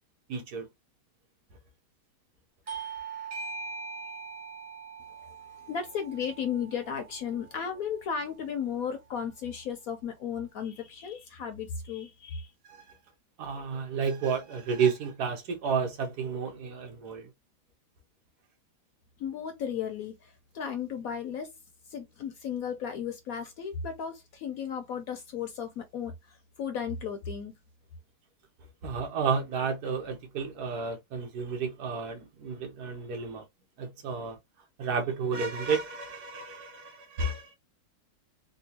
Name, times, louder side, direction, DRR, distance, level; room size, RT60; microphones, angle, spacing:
voice 1, 0.3-0.7 12.6-13.0 13.4-17.3 28.8-33.4 33.8-34.4 34.8-37.6, right 5 dB, 70° right, 1.4 m, -31 dB
Bell / Doorbell, 2.7-7.7, right 5 dB, 45° right, 0.4 m, -41 dB
voice 2, 5.5-12.5 19.2-21.5 21.9-27.5, left 7 dB, 65° left, 0.9 m, -35 dB
3.7 x 2.3 x 2.7 m
omnidirectional pair, 1.8 m